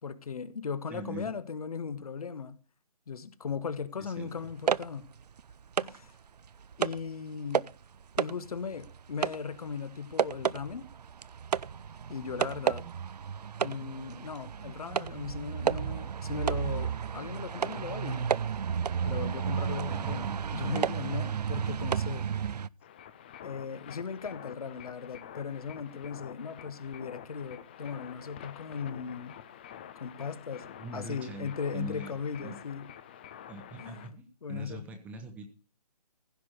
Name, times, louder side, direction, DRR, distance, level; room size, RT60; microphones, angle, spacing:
voice 1, 0.0-2.6 3.1-5.1 5.8-6.1 6.8-7.7 8.2-10.9 12.1-12.9 13.6-18.3 19.0-20.3 20.5-22.3 23.4-29.4 29.9-32.9 33.8-34.8, left 6 dB, 65° left, 1.4 m, -38 dB
voice 2, 0.9-1.3 4.0-4.5 12.8-12.9 19.6-20.4 30.8-32.1 32.4-32.6 33.5-35.5, right 2 dB, 5° right, 0.9 m, -43 dB
sound 1, 4.4-6.1 6.5-7.1 7.5-7.8 8.2-22.7, right 7 dB, 80° right, 0.5 m, -32 dB
sound 2, 22.8-34.1, left 10 dB, 15° left, 0.5 m, -48 dB
15.5 x 6.1 x 6.5 m
hypercardioid pair, 160°, 20 cm